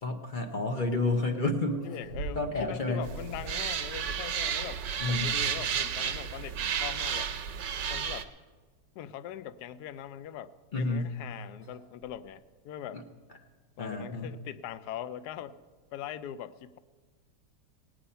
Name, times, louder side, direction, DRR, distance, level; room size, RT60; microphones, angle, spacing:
voice 1, 0.0-1.8 2.4-3.1 5.0-5.3 10.7-11.1 12.9-13.0 13.8-14.4, left 2 dB, 40° left, 4 dB, 0.8 m, -30 dB
sound 1, 1.6-2.7 2.9-3.1 3.9-4.7 6.5-6.7 7.0-7.3 7.6-7.7 8.5-8.6 10.4-12.5, right 4 dB, 90° left, 3.9 m, -45 dB
voice 2, 1.8-4.8 5.1-7.3 7.9-8.3 9.0-13.0 13.8-15.6 15.9-16.8, left 10 dB, 75° left, 14 dB, 1.1 m, -41 dB
sound 2, 3.0-8.2, right 8 dB, 85° right, 1.4 m, -32 dB
17.5 x 8.8 x 5.6 m, 1.4 s
omnidirectional pair, 1.9 m